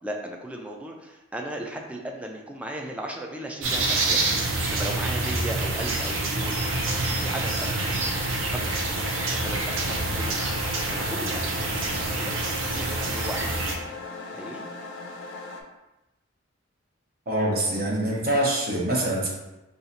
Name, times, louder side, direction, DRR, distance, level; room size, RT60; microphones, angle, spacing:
voice 1, 0.0-4.3 4.7-6.6 7.0-8.1 8.5-8.8 9.4-13.5 14.3-14.6, right 1 dB, 5° right, 1 dB, 0.3 m, -36 dB
sound 1, 3.6-13.8, right 2 dB, 80° right, 0.5 m, -27 dB
sound 2, 6.4-15.6, left 3 dB, 65° left, 0.4 m, -38 dB
voice 2, 17.3-19.3, right 1 dB, 50° right, -3 dB, 0.8 m, -24 dB
2.7 x 2.4 x 4.0 m, 1.0 s
head